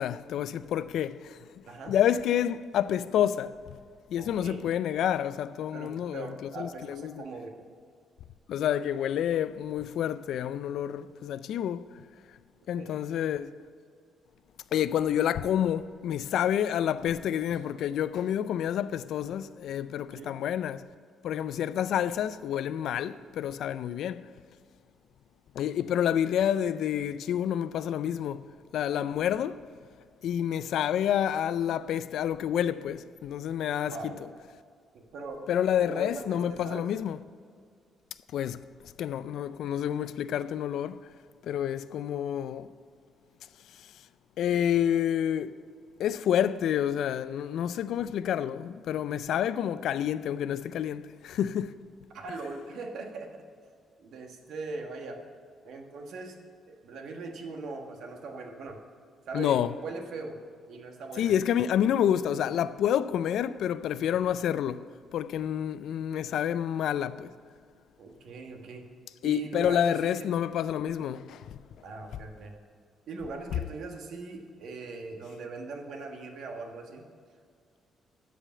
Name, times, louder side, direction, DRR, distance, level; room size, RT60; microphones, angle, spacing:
voice 1, 0.0-1.4 1.9-3.8 4.1-7.2 8.5-12.0 12.7-13.5 14.7-20.9 21.2-24.3 25.6-29.6 30.2-34.1 35.5-37.2 38.3-41.1 41.4-42.7 43.7-43.9 44.4-45.6 46.0-51.8 59.3-59.7 61.2-67.4 69.2-71.6, left 10 dB, 65° left, 0.3 m, -29 dB
voice 2, 4.2-4.7 5.7-7.6 12.8-13.0 20.1-20.3 33.9-34.2 34.9-35.4 35.8-36.9 52.1-53.4 54.0-55.2 55.6-56.4 56.7-58.8 59.3-60.4 60.7-61.3 68.0-68.9 69.2-70.3 71.8-72.6 73.1-77.1, right 3 dB, 60° right, 1.3 m, -40 dB
13.0 x 5.0 x 7.5 m
cardioid pair, 175°, 0 cm